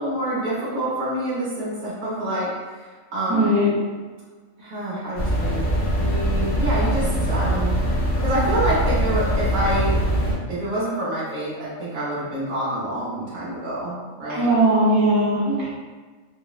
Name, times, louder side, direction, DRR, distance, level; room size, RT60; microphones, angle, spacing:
voice 1, 0.0-3.6 4.6-7.8 8.2-10.0 10.5-14.5, right 1 dB, 85° right, -9 dB, 1.4 m, -27 dB
voice 2, 3.3-3.7 14.3-15.7, right 1 dB, 65° right, -10 dB, 1.5 m, -19 dB
sound 1, 5.2-10.3, equal, 80° left, 1.4 m, -22 dB
4.3 x 2.0 x 2.4 m, 1.4 s
omnidirectional pair, 1.4 m